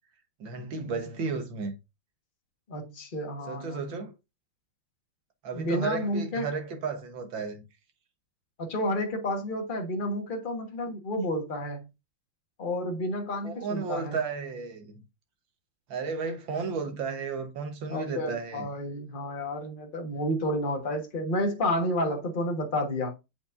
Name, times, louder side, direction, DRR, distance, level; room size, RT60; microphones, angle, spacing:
voice 1, 0.4-1.7 3.5-4.1 5.4-7.6 13.4-15.0 15.9-18.7, right 4 dB, 60° right, 1.9 m, -33 dB
voice 2, 2.7-3.8 5.5-6.5 8.6-11.9 12.6-14.2 17.9-23.2, left 1 dB, 25° left, 1.4 m, -30 dB
7.9 x 5.6 x 2.6 m
omnidirectional pair, 2.4 m